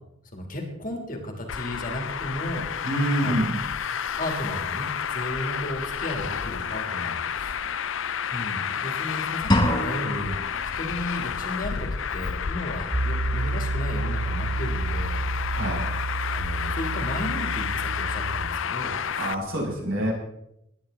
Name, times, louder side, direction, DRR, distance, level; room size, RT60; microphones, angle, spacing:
voice 1, 0.3-2.7 3.2-3.4 4.1-7.6 8.3-10.4 10.7-15.2 16.3-19.3, left 1 dB, 40° left, 2 dB, 3.1 m, -34 dB
Traffic noise roadway noise, 1.5-19.3, left 7 dB, 65° left, 0.6 m, -30 dB
voice 2, 2.8-3.6 15.5-15.9 19.2-20.1, right 1 dB, 70° right, -3 dB, 6.6 m, -26 dB
sound 1, 9.5-10.5, left 1 dB, 20° left, 1.8 m, -23 dB
Piano, 12.9-18.5, right 2 dB, 20° right, 0.5 m, -30 dB
20.0 x 11.5 x 4.0 m, 0.80 s
head